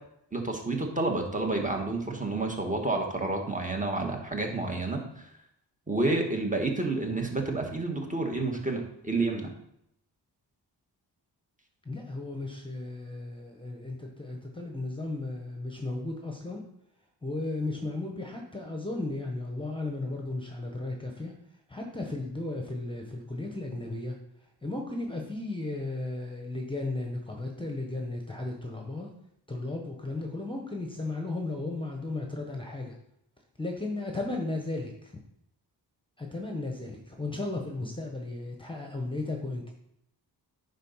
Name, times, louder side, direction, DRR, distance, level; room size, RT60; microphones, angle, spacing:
voice 1, 0.3-5.0 5.9-9.5, right 2 dB, 20° right, 1 dB, 1.7 m, -29 dB
voice 2, 11.8-16.6 17.2-21.3 21.7-24.2 24.6-29.1 29.5-33.0 33.6-35.2 36.2-39.7, left 2 dB, 10° left, 1 dB, 1.2 m, -35 dB
9.5 x 4.0 x 5.6 m, 0.76 s
cardioid pair, 80°, 43 cm